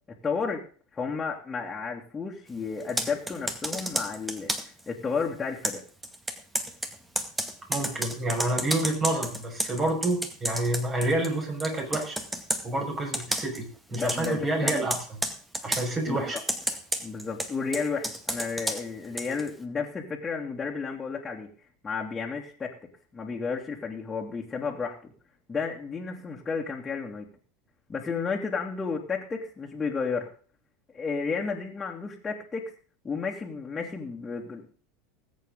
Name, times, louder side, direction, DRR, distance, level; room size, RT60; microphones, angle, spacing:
voice 1, 0.2-0.6 0.9-5.8 13.9-14.9 16.1-16.4 17.0-21.5 21.8-22.7 23.1-25.1 25.5-27.3 27.9-30.3 30.9-32.7 33.0-34.7, left 5 dB, 20° left, -3 dB, 2.5 m, -32 dB
Computer keyboard, 2.8-4.8 5.6-11.4 11.6-12.7 13.1-13.6 13.9-14.3 14.7-15.9 16.4-19.5, right 1 dB, 10° right, 2.0 m, -31 dB
voice 2, 7.7-12.2 12.6-13.6 13.9-14.9 15.6-16.4, right 1 dB, 30° right, 2 dB, 6.1 m, -28 dB
19.5 x 8.4 x 3.9 m, 0.41 s
hypercardioid pair, 85°, 0 cm